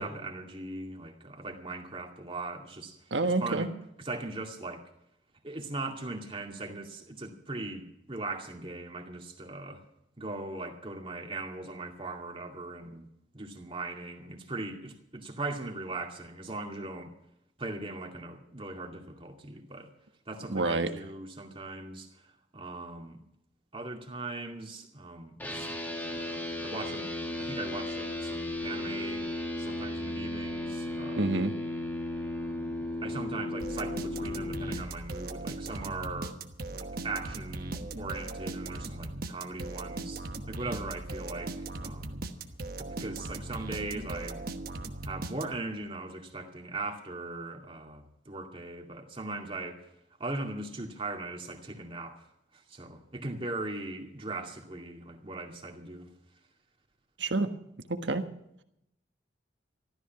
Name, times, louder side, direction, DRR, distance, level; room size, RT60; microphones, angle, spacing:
voice 1, 0.0-3.7 4.0-4.9 5.4-9.8 10.2-13.1 13.3-17.1 17.6-19.9 20.3-23.2 23.7-25.7 26.1-27.1 27.4-29.3 29.6-31.3 32.4-36.4 36.7-42.2 42.8-44.4 45.0-49.9 50.2-52.3 52.5-56.1, right 2 dB, 30° right, 2.3 m, -39 dB
voice 2, 3.1-3.7 20.5-20.9 31.2-31.5 57.2-57.5 57.9-58.3, right 2 dB, 75° right, 1.4 m, -28 dB
sound 1, 25.4-34.8, left 1 dB, 10° left, 1.9 m, -35 dB
sound 2, 33.6-45.8, right 2 dB, 55° right, 1.2 m, -39 dB
14.5 x 13.0 x 5.8 m
head